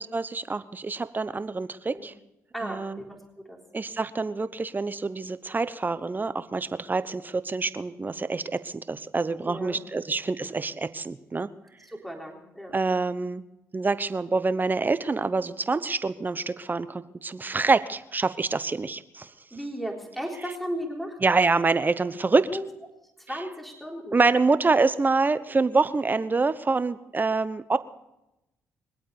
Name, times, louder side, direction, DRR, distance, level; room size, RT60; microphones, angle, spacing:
voice 1, 0.0-2.1 2.6-3.0 3.7-11.5 12.7-13.4 13.7-19.3 21.2-22.5 24.1-27.8, right 3 dB, 30° right, 14 dB, 0.9 m, -26 dB
voice 2, 2.5-3.6 9.4-10.0 11.9-12.8 19.5-21.2 22.5-22.6 23.2-24.2, equal, ahead, 1 dB, 3.7 m, -35 dB
23.0 x 8.5 x 7.0 m, 0.92 s
supercardioid pair, 55°, 6 cm